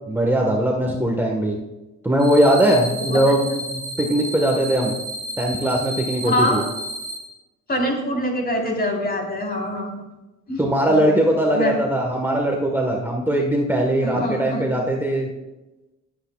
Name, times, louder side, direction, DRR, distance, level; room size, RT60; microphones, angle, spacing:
voice 1, 0.1-1.6 2.0-4.9 5.4-6.6 10.6-15.3, right 1 dB, 5° right, 0 dB, 1.4 m, -20 dB
sound 1, 2.2-7.2, right 1 dB, 60° right, 2.2 m, -32 dB
voice 2, 6.2-6.6 7.7-10.0 10.5-11.0 11.5-11.7 14.0-14.6, equal, 30° left, 0 dB, 4.0 m, -24 dB
20.0 x 8.6 x 2.4 m, 1.0 s
cardioid pair, 90°, 30 cm